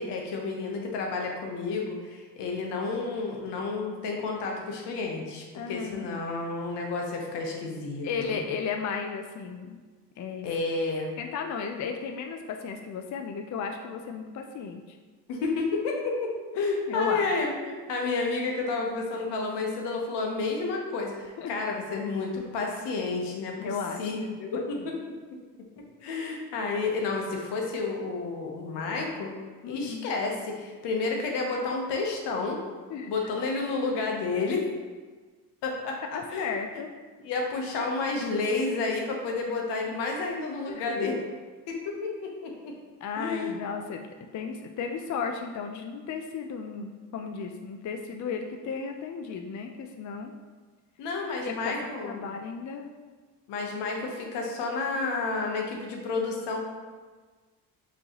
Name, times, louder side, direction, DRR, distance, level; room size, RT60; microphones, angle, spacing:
voice 1, 0.0-8.4 10.4-11.1 15.3-23.7 24.0-25.0 26.0-29.3 29.7-32.6 33.1-34.7 35.6-36.5 37.2-41.2 41.7-42.7 43.2-43.5 51.0-52.3 53.5-56.6, left 3 dB, 75° left, 0 dB, 0.9 m, -30 dB
voice 2, 5.5-6.1 8.0-9.8 10.2-10.5 11.2-15.0 16.9-17.3 21.4-21.5 23.6-24.4 29.6-30.1 32.9-33.2 36.1-36.9 40.7-41.2 43.0-44.1 44.3-50.3 51.4-51.7 52.0-52.9, left 6 dB, 45° left, 4 dB, 0.5 m, -34 dB
5.2 x 3.1 x 2.9 m, 1.4 s
supercardioid pair, 60°, 41 cm